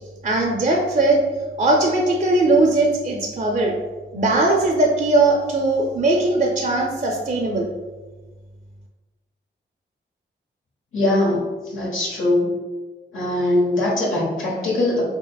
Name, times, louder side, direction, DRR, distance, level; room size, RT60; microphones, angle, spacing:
voice 1, 0.2-1.2 1.6-3.7 4.1-7.7, right 2 dB, 40° right, 0 dB, 0.5 m, -19 dB
voice 2, 10.9-12.5 13.1-15.0, left 2 dB, 90° left, -5 dB, 1.2 m, -21 dB
4.9 x 2.8 x 2.2 m, 1.3 s
wide cardioid pair, 85°, 20 cm